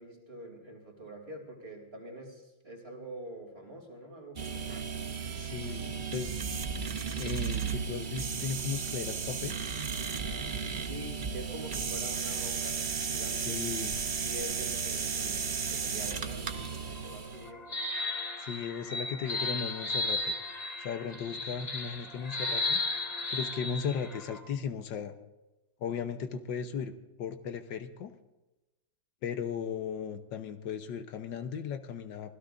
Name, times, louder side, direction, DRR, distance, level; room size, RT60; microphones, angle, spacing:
voice 1, 0.0-4.8 10.8-12.8 13.1-13.6 14.2-17.8, right 1 dB, 30° right, 2 dB, 3.2 m, -45 dB
sound 1, 4.4-17.5, right 6 dB, 60° right, 0.5 m, -34 dB
voice 2, 5.4-6.4 7.2-9.9 13.4-14.0 18.4-20.3 20.8-22.8 23.3-25.1 25.8-26.9 27.2-28.1 29.2-32.3, left 7 dB, 75° left, 8 dB, 1.6 m, -36 dB
sound 2, 16.5-24.4, left 2 dB, 35° left, 1.7 m, -35 dB
24.5 x 16.5 x 2.6 m, 1.0 s
omnidirectional pair, 2.0 m